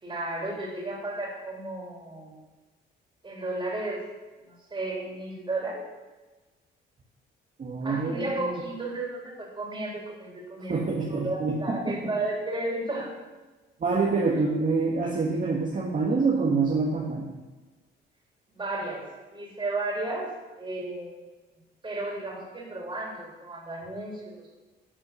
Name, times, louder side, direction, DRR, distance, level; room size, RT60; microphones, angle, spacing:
voice 1, 0.0-2.3 3.2-4.0 4.7-5.8 7.8-13.1 18.5-20.3 20.6-21.2 21.8-24.4, right 2 dB, 25° right, -3 dB, 3.5 m, -33 dB
voice 2, 7.6-8.6 10.7-11.9 13.8-17.3, right 4 dB, 40° right, -4 dB, 1.7 m, -26 dB
10.0 x 5.1 x 6.3 m, 1.2 s
cardioid pair, 90°, 20 cm